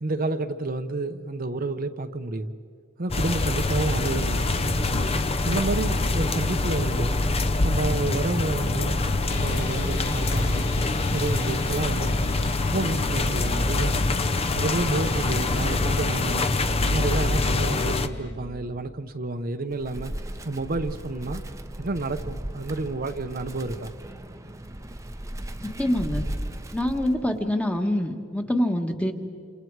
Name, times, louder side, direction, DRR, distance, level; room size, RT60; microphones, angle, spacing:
voice 1, 0.0-2.5 3.0-4.9 5.4-7.2 7.6-9.0 9.3-10.7 11.1-12.3 12.7-14.0 14.5-16.5 16.8-20.1 20.4-21.4 21.8-23.9, right 2 dB, 45° right, 7 dB, 0.8 m, -30 dB
sound 1, 3.1-18.1, left 2 dB, 30° left, 0.8 m, -25 dB
sound 2, 9.3-18.3, left 4 dB, 70° left, 5.2 m, -41 dB
Wind, 19.7-27.5, right 1 dB, 15° right, 0.9 m, -36 dB
voice 2, 25.8-26.2 26.7-29.1, left 1 dB, 5° left, 5 dB, 1.4 m, -25 dB
28.5 x 28.0 x 4.8 m, 2.3 s
head